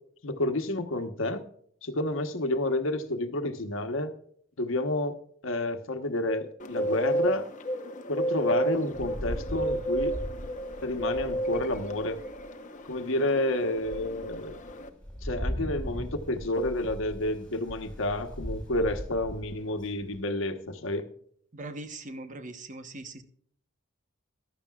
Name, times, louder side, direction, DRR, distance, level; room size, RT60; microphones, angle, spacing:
voice 1, 0.2-1.4 1.8-4.1 4.6-5.1 5.4-7.5 8.1-10.1 10.8-12.2 12.9-14.6 15.2-21.1, left 1 dB, 70° left, 8 dB, 1.2 m, -30 dB
Bird, 6.6-14.9, right 1 dB, 40° left, 1.0 m, -32 dB
Rain, 8.9-12.5 13.0-13.1 13.6-20.2, equal, 5° left, 5.7 m, -39 dB
voice 2, 21.5-23.2, right 2 dB, 40° right, 9 dB, 1.1 m, -40 dB
15.0 x 12.0 x 2.4 m, 0.63 s
head